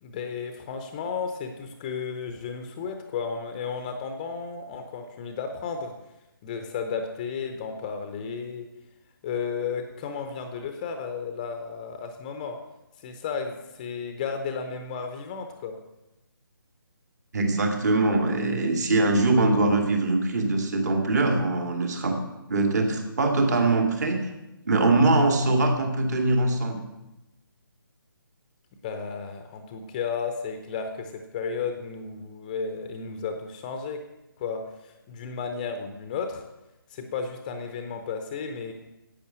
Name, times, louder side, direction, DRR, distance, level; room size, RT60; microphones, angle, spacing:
voice 1, 0.0-6.0 6.4-8.7 9.2-12.6 13.0-15.8 28.8-34.0 34.4-36.4 36.9-38.7, left 5 dB, 20° left, 6 dB, 0.7 m, -33 dB
voice 2, 17.3-22.2 22.5-24.2 24.7-26.8, right 2 dB, 45° right, 3 dB, 2.2 m, -22 dB
11.0 x 8.5 x 6.2 m, 0.94 s
figure-of-eight pair, 150°, 12 cm